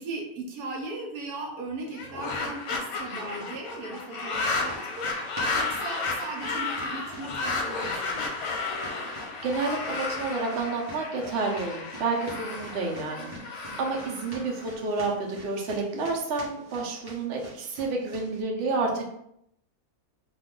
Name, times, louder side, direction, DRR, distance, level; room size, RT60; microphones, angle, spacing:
voice 1, 0.0-5.1 5.5-8.5 13.6-13.9, right 2 dB, 80° right, 0 dB, 1.2 m, -38 dB
sound 1, 1.9-15.1, left 3 dB, 65° left, 0.9 m, -33 dB
sound 2, 4.2-18.4, right 1 dB, 20° right, 0.6 m, -47 dB
voice 2, 9.0-19.1, right 3 dB, 60° right, -1 dB, 0.8 m, -30 dB
2.5 x 2.3 x 3.6 m, 0.76 s
omnidirectional pair, 1.5 m